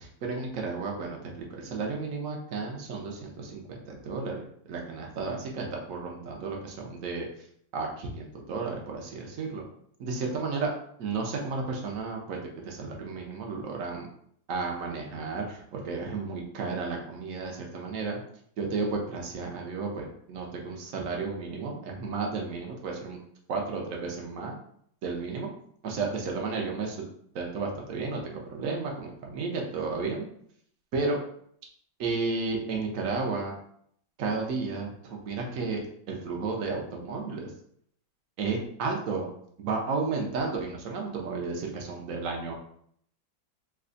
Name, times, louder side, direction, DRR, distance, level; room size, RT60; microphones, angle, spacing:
voice 1, 0.2-7.3 7.7-9.6 10.0-10.7 11.0-14.1 14.5-18.2 18.6-23.2 23.5-24.6 25.0-25.5 25.8-27.0 27.3-30.3 30.9-31.2 32.0-33.5 34.2-35.8 36.1-37.5 38.4-39.3 39.6-42.5, right 4 dB, 70° right, 0 dB, 0.8 m, -33 dB
3.3 x 2.2 x 3.8 m, 0.66 s
omnidirectional pair, 2.2 m